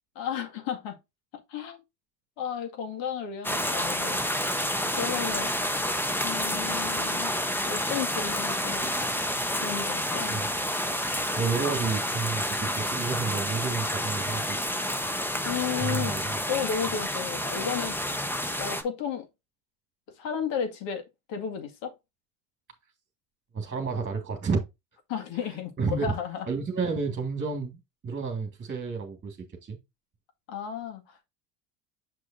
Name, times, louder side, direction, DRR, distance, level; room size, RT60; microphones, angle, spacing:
voice 1, 0.2-1.0 1.3-1.8 2.4-4.2 4.9-5.5 6.2-7.3 7.6-8.9 9.6-10.4 15.4-16.2 16.5-18.0 18.6-19.3 20.2-21.9 25.1-26.5 30.5-31.3, left 8 dB, 65° left, 2.2 m, -33 dB
sound 1, 3.4-18.8, equal, 5° left, 1.0 m, -29 dB
voice 2, 11.0-14.6 15.8-16.2 23.5-24.6 25.4-25.5 25.8-26.1 26.5-29.8, right 5 dB, 25° right, 2.1 m, -31 dB
6.9 x 6.3 x 2.7 m
supercardioid pair, 95°, 49 cm